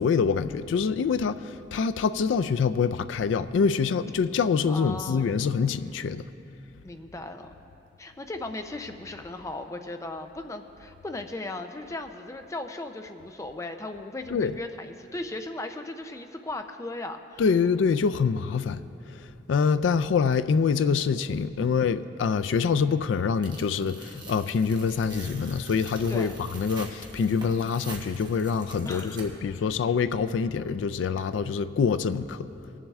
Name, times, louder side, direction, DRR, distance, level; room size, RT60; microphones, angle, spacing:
voice 1, 0.0-6.3 14.3-14.5 17.4-18.8 19.1-32.5, left 5 dB, 85° left, 0.3 m, -25 dB
voice 2, 4.7-5.5 6.8-7.5 8.0-17.4 25.9-26.4 28.9-29.4, left 2 dB, 15° left, 0.5 m, -37 dB
Tearing, 23.4-29.6, right 3 dB, 25° right, 1.1 m, -45 dB
21.5 x 7.3 x 3.5 m
head